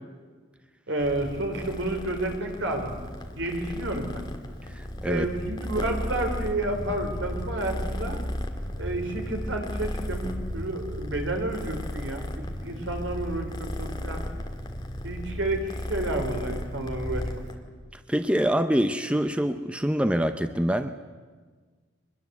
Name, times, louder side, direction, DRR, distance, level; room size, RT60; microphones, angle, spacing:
voice 1, 0.9-3.0 3.4-4.3 5.1-8.2 8.8-12.3 12.6-14.2 15.0-17.4, right 1 dB, 70° right, 4 dB, 4.1 m, -30 dB
Purr, 1.0-17.5, equal, 20° left, 2.0 m, -35 dB
voice 2, 4.7-5.3 17.9-20.9, equal, 5° right, 9 dB, 0.6 m, -25 dB
23.5 x 21.0 x 8.2 m, 1.5 s
head